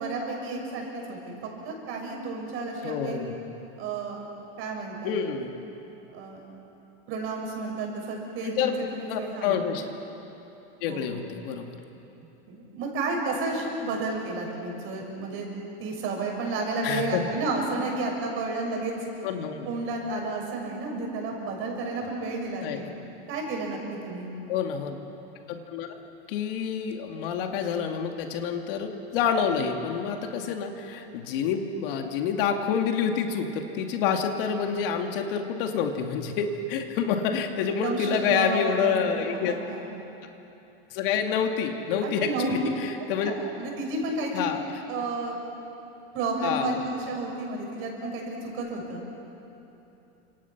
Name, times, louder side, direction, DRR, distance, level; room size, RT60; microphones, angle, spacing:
voice 1, 0.0-1.3 1.6-3.2 3.8-4.2 4.6-5.1 6.1-6.4 7.1-9.6 10.8-11.0 11.3-11.5 12.5-15.5 15.8-18.9 19.6-22.9 23.3-24.3 37.8-39.8 42.0-42.5 43.2-44.5 44.9-45.4 46.1-49.0, right 3 dB, 40° right, 0 dB, 6.5 m, -31 dB
voice 2, 2.8-3.4 5.0-5.6 8.4-8.7 9.1-9.8 10.8-11.8 16.8-17.2 19.2-19.7 22.6-22.8 24.5-25.0 25.5-26.0 26.3-39.6 40.9-43.3 44.3-44.6 46.4-46.8, left 7 dB, 60° left, 4 dB, 2.4 m, -28 dB
30.0 x 26.5 x 6.1 m, 2.9 s
supercardioid pair, 145°, 31 cm